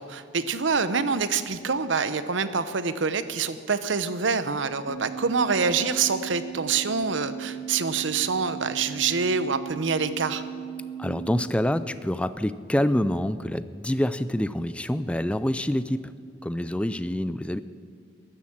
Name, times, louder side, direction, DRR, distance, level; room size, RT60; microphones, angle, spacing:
voice 1, 0.0-10.4, right 5 dB, 75° right, 13 dB, 0.8 m, -26 dB
sound 1, 4.9-11.5, right 8 dB, 60° left, 2.4 m, -37 dB
voice 2, 11.0-16.1 16.4-17.6, left 1 dB, 5° left, 14 dB, 0.3 m, -26 dB
14.0 x 11.5 x 7.3 m, 2.3 s
head